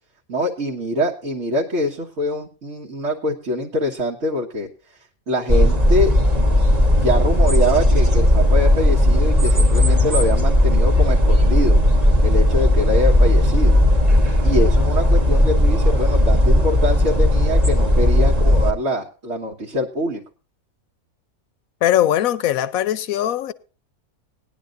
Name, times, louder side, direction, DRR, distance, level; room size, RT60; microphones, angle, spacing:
voice 1, 0.3-4.7 5.3-6.1 6.9-11.8 12.2-13.8 14.4-20.2, left 1 dB, 55° right, 1.9 m, -24 dB
sound 1, 5.5-18.7, left 1 dB, 25° right, 1.6 m, -16 dB
voice 2, 21.8-23.5, left 12 dB, 70° left, 1.1 m, -20 dB
19.5 x 10.5 x 2.6 m
omnidirectional pair, 1.5 m